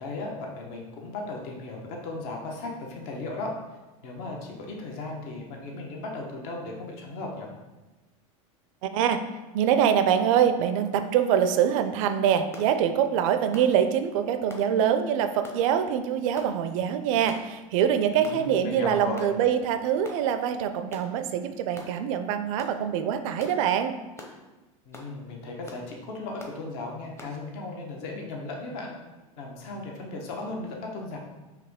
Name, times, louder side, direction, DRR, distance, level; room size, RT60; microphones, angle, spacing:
voice 1, 0.0-3.5 4.0-7.5 18.2-19.3 24.8-28.9 29.4-31.2, left 2 dB, 60° left, 0 dB, 1.0 m, -36 dB
voice 2, 8.8-9.2 9.5-24.0, right 9 dB, 70° right, 9 dB, 0.4 m, -24 dB
sound 1, 12.5-12.7 13.5-13.7 14.5-14.7 15.4-15.6 16.4-16.5 17.3-17.5 18.2-18.4 19.2-19.4 20.0-20.2 20.9-21.1 21.7-21.9 22.6-22.8 23.4-23.6 24.2-24.4 24.9-25.1 25.7-25.9 26.4-26.6 27.2-27.4, left 1 dB, 15° left, 0.7 m, -44 dB
4.7 x 2.9 x 3.5 m, 1.1 s
supercardioid pair, 110°, 18 cm